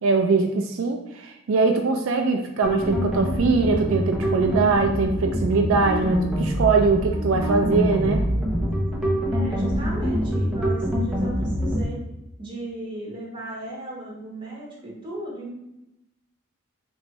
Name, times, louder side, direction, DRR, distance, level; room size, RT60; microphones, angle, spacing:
voice 1, 0.0-8.3, right 4 dB, 75° right, 4 dB, 0.3 m, -22 dB
sound 1, 2.6-11.8, equal, 5° right, 0.6 m, -25 dB
voice 2, 9.3-12.0 12.4-15.5, right 1 dB, 25° right, -5 dB, 1.2 m, -36 dB
3.1 x 2.6 x 4.2 m, 0.89 s
head